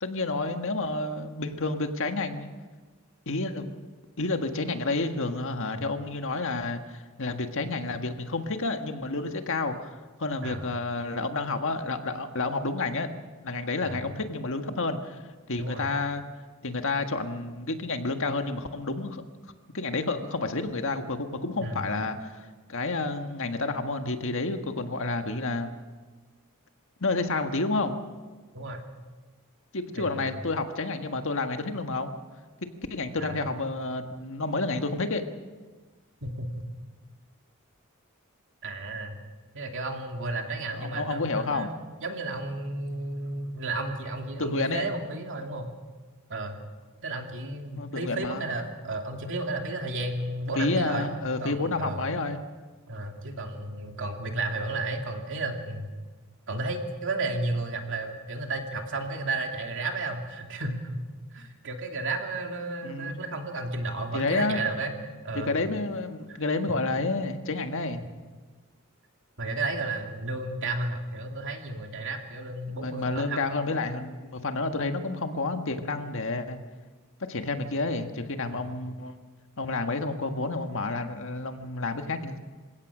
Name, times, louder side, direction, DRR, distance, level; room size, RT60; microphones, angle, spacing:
voice 1, 0.0-2.5 3.2-3.7 4.2-13.1 13.4-15.2 15.5-16.2 16.6-19.2 19.7-25.7 27.0-28.0 29.7-32.1 32.6-35.2 40.7-41.7 44.4-44.8 47.8-48.5 50.5-52.4 62.8-63.2 64.1-64.6 65.5-68.0 72.8-76.6 77.2-79.1 79.6-82.4, left 3 dB, 60° left, 6 dB, 1.7 m, -30 dB
voice 2, 15.6-15.9 21.6-21.8 28.5-28.8 29.9-30.3 33.2-33.5 36.2-36.7 38.6-39.2 39.5-45.7 46.3-46.6 47.0-51.1 51.4-52.0 52.9-55.9 56.5-61.0 61.3-64.9 65.2-65.6 66.3-66.4 68.0-68.1 69.4-73.4 78.5-78.7, right 2 dB, 60° right, 3 dB, 2.8 m, -33 dB
28.0 x 17.0 x 6.3 m, 1.3 s
head